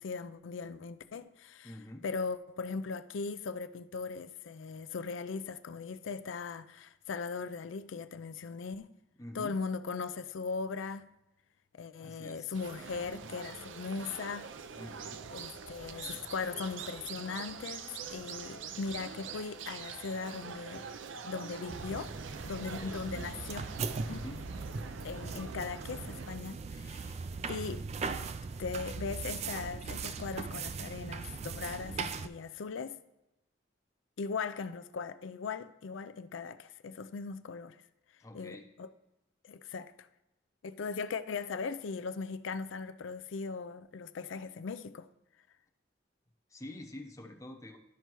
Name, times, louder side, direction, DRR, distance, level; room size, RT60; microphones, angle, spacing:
voice 1, 0.0-1.7 2.0-8.9 9.3-11.1 11.7-14.5 15.3-20.9 21.2-22.1 22.4-23.7 24.1-24.2 25.0-27.2 27.5-27.9 28.2-28.3 28.6-33.0 34.2-37.8 38.3-38.9 39.4-40.1 40.6-45.1, left 5 dB, 90° left, 0.4 m, -39 dB
voice 2, 1.6-2.0 9.2-9.6 12.0-12.6 14.7-15.2 22.7-23.1 24.1-24.5 38.2-38.7 46.5-47.8, left 1 dB, 15° left, 0.8 m, -46 dB
sound 1, 12.5-26.4, right 6 dB, 85° right, 0.5 m, -45 dB
sound 2, 21.7-32.3, right 5 dB, 35° right, 0.3 m, -39 dB
12.5 x 5.6 x 3.0 m
head